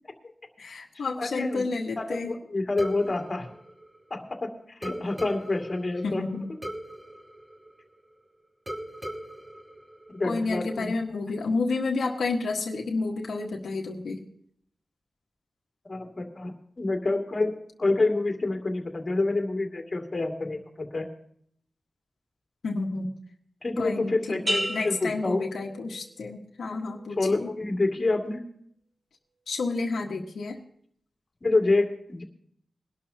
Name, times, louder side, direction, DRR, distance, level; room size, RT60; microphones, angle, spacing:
voice 1, 0.6-2.3 6.0-6.5 10.2-14.2 22.6-23.1 23.8-27.5 29.5-30.6, left 3 dB, 85° left, -1 dB, 1.6 m, -30 dB
voice 2, 1.2-1.6 2.0-3.5 4.1-4.5 4.8-6.2 10.1-10.9 15.9-17.5 17.8-21.1 23.6-25.4 27.2-28.4 31.4-32.2, left 2 dB, 35° left, 2 dB, 2.4 m, -27 dB
sound 1, 2.8-4.4 4.8-8.2 8.7-10.6, right 1 dB, 15° right, 2.4 m, -40 dB
sound 2, 24.5-26.2 26.7-27.2, equal, 45° right, 6.3 m, -33 dB
22.0 x 12.0 x 2.9 m, 0.65 s
wide cardioid pair, 110°, 0 cm